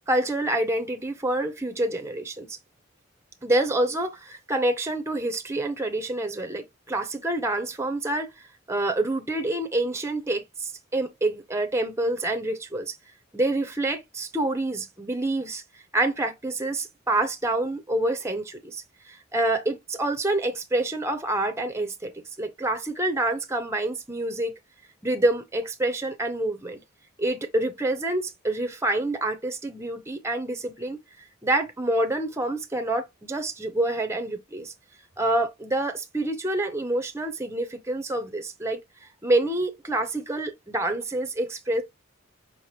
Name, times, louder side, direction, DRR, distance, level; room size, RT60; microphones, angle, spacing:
voice 1, 0.1-2.6 3.4-8.3 8.7-13.0 13.3-15.6 15.9-24.5 25.0-26.8 27.2-31.0 31.4-34.7 35.2-38.8 39.2-41.8, right 2 dB, 15° right, 0.6 m, -27 dB
5.4 x 2.9 x 3.2 m
head